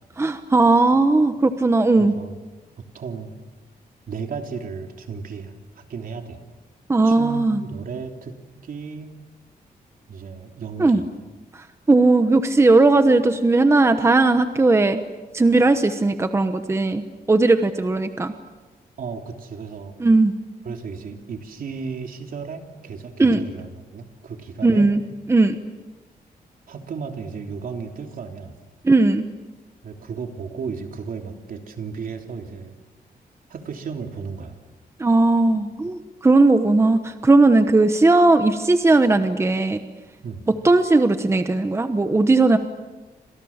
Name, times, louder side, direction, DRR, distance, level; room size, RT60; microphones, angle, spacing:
voice 1, 0.2-2.1 6.9-7.6 10.8-11.0 11.9-15.0 15.3-17.0 17.3-18.3 20.0-20.3 23.2-23.4 24.6-25.0 25.3-25.6 28.8-29.3 35.0-39.8 40.6-42.6, right 2 dB, 15° right, 9 dB, 1.1 m, -17 dB
voice 2, 2.0-2.4 2.8-3.3 4.1-6.4 7.0-8.4 8.6-9.2 10.1-11.1 19.0-19.9 20.6-24.9 26.7-28.5 29.8-32.8 33.5-34.5 40.2-40.4, right 5 dB, 65° right, 4 dB, 3.3 m, -34 dB
30.0 x 26.5 x 7.3 m, 1.2 s
wide cardioid pair, 155°, 16 cm